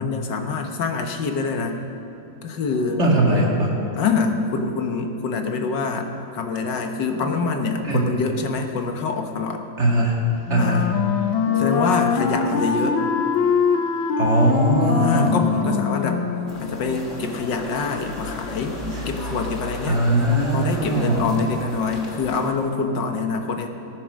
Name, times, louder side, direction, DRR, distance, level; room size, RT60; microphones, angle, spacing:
voice 1, 0.0-1.8 2.4-3.0 4.0-6.1 6.3-9.6 10.6-10.9 11.6-13.0 14.9-16.2 16.6-18.8 19.1-20.0 20.5-23.7, left 4 dB, 70° left, 4 dB, 1.7 m, -25 dB
sound 1, 2.7-6.3 7.1-10.9 11.4-19.4, left 3 dB, 10° left, 1.2 m, -37 dB
voice 2, 3.0-3.8 7.8-8.1 9.8-10.2 10.5-10.8 14.2-15.4 18.9-19.0 19.9-21.4, right 1 dB, 35° right, -2 dB, 2.4 m, -20 dB
Wind instrument woodwind instrument, 10.5-16.7, left 6 dB, 85° left, 1.6 m, -23 dB
sound 2, 16.5-22.5, left 2 dB, 40° left, 1.8 m, -34 dB
18.5 x 9.5 x 6.4 m, 2.7 s
omnidirectional pair, 2.1 m